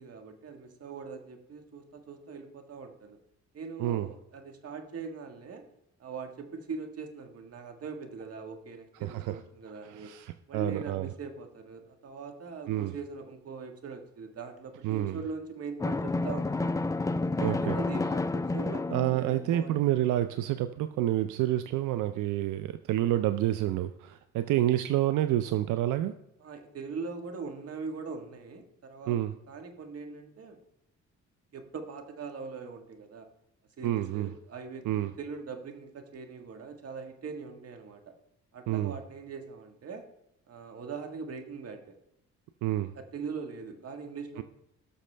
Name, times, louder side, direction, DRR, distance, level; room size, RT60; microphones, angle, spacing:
voice 1, 0.0-3.2 3.5-5.7 6.0-10.1 10.5-16.7 17.4-20.0 26.4-29.2 29.5-30.6 31.5-33.3 33.8-38.1 38.5-40.0 40.5-41.9 42.9-44.4, right 5 dB, 50° right, 5 dB, 1.6 m, -41 dB
voice 2, 9.0-9.4 9.9-11.1 12.7-12.9 14.8-15.2 17.4-17.8 18.9-26.1 29.1-29.3 33.8-34.3 34.8-35.1 38.7-38.9 42.6-42.9, right 13 dB, 85° right, 11 dB, 0.5 m, -28 dB
Drum, 15.8-19.6, left 2 dB, 10° left, 0.5 m, -30 dB
18.5 x 6.5 x 3.3 m, 0.80 s
cardioid pair, 90°, 30 cm